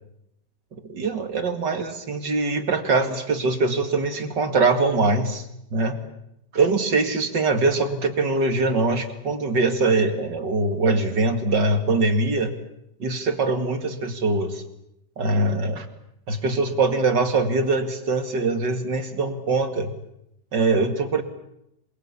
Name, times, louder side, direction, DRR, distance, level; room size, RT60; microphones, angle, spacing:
voice 1, 0.9-5.5 5.7-6.0 6.5-12.5 13.0-14.6 15.2-15.9 16.3-19.9 20.5-21.2, right 3 dB, 35° right, 7 dB, 1.9 m, -22 dB
27.5 x 21.5 x 8.5 m, 0.82 s
omnidirectional pair, 4.5 m